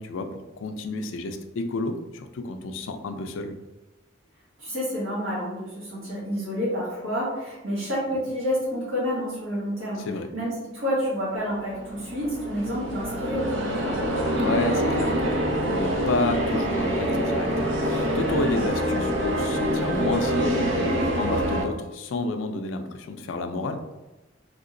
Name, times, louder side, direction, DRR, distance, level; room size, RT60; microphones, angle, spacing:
voice 1, 0.0-3.5 10.0-10.3 14.4-23.8, left 2 dB, 75° left, 7 dB, 0.4 m, -30 dB
voice 2, 4.6-10.1 10.3-13.9, equal, 90° right, -7 dB, 1.3 m, -29 dB
sound 1, 11.5-21.7, equal, 70° right, 0.6 m, -25 dB
3.5 x 2.8 x 2.6 m, 1.0 s
head